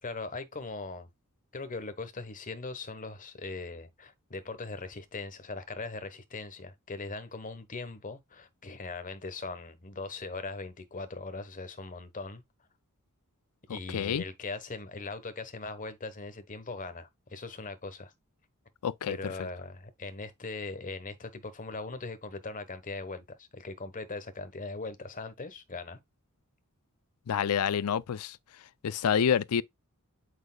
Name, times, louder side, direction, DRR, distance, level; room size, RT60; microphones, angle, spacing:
voice 1, 0.0-1.1 1.5-12.4 13.7-18.1 19.1-26.0, left 3 dB, 35° left, 1.2 m, -40 dB
voice 2, 13.7-14.2 18.8-19.2 27.3-28.4 28.8-29.6, left 8 dB, 85° left, 0.4 m, -28 dB
8.2 x 5.0 x 2.3 m
head